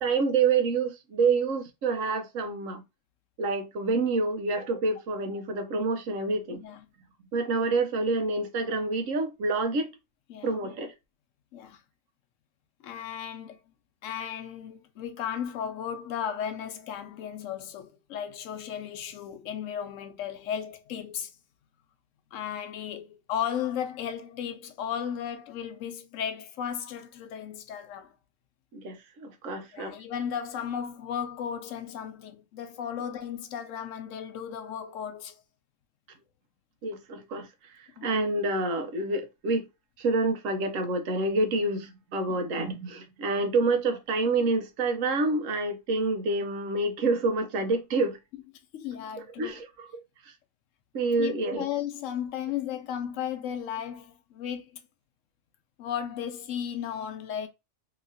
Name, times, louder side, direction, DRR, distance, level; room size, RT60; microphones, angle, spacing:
voice 1, 0.0-2.8 3.4-6.6 7.3-9.9 10.4-10.9 28.7-30.0 36.8-39.7 40.0-48.2 49.4-50.3 50.9-51.6, right 3 dB, 85° right, 1.1 m, -28 dB
voice 2, 12.8-13.6 14.0-21.3 22.3-28.1 29.7-35.4 38.0-38.1 42.3-42.4 48.7-49.6 51.2-54.8 55.8-57.5, left 9 dB, 80° left, 1.0 m, -35 dB
3.0 x 2.8 x 2.6 m
omnidirectional pair, 1.3 m